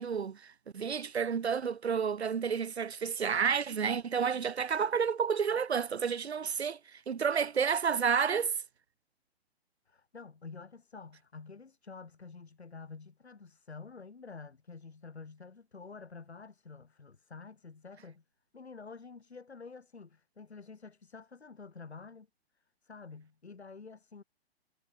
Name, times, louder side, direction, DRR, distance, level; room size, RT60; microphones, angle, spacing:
voice 1, 0.0-8.5, right 6 dB, 85° right, 1.3 m, -30 dB
voice 2, 9.9-18.2 18.5-22.3 22.8-24.2, left 4 dB, 90° left, 3.5 m, -49 dB
hypercardioid pair, 125°, 32 cm